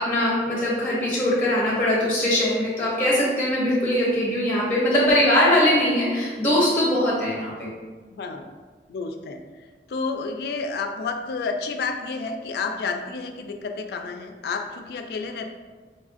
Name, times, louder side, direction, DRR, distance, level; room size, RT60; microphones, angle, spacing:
voice 1, 0.0-7.7, left 1 dB, 10° left, -6 dB, 0.7 m, -21 dB
voice 2, 8.1-8.4 8.9-9.4 9.9-15.5, left 4 dB, 60° left, 5 dB, 0.3 m, -30 dB
4.3 x 2.4 x 2.4 m, 1.4 s
head